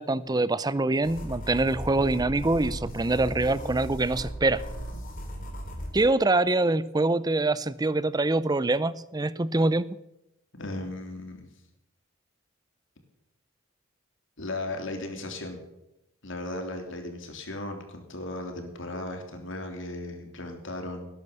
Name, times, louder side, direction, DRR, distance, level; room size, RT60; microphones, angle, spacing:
voice 1, 0.0-4.6 5.9-10.0, right 2 dB, 20° right, 17 dB, 0.5 m, -25 dB
sound 1, 1.0-5.9, equal, 40° left, 4.1 m, -37 dB
voice 2, 10.6-11.5 14.4-15.6 16.2-21.1, left 2 dB, 60° left, 4 dB, 3.4 m, -36 dB
18.5 x 11.0 x 6.9 m, 0.88 s
head